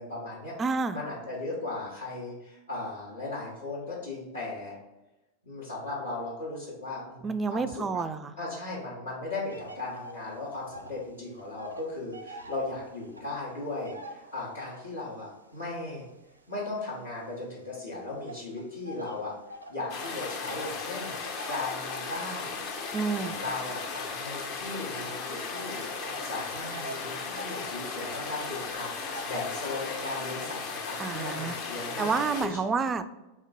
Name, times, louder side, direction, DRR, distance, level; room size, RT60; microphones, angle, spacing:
voice 1, 0.0-0.5 0.9-4.7 5.4-8.1 8.4-16.0 16.5-19.3 19.7-21.1 21.5-22.6 22.9-32.6, left 2 dB, 70° left, -8 dB, 1.3 m, -37 dB
voice 2, 0.6-1.0 7.2-8.3 22.9-23.3 31.0-31.5 32.0-33.1, right 4 dB, 20° right, 12 dB, 0.3 m, -29 dB
sound 1, 9.5-11.1 11.3-15.0 15.6-17.6 18.3-29.3, right 1 dB, 80° right, 0.5 m, -46 dB
sound 2, 19.9-32.5, left 4 dB, 45° left, 0.7 m, -36 dB
3.6 x 3.5 x 4.0 m, 1.0 s
figure-of-eight pair, 90°, 0 cm